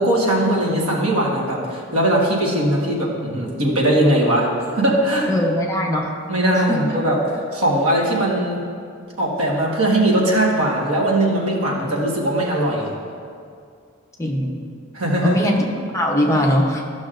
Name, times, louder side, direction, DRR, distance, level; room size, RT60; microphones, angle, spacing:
voice 1, 0.0-5.3 6.3-8.6 9.2-12.9 14.9-15.4, right 1 dB, 85° right, -2 dB, 1.4 m, -20 dB
voice 2, 5.3-6.1 14.2-14.6 15.2-15.7 15.9-16.8, equal, 15° left, 0 dB, 0.7 m, -20 dB
13.5 x 6.1 x 2.5 m, 2.3 s
head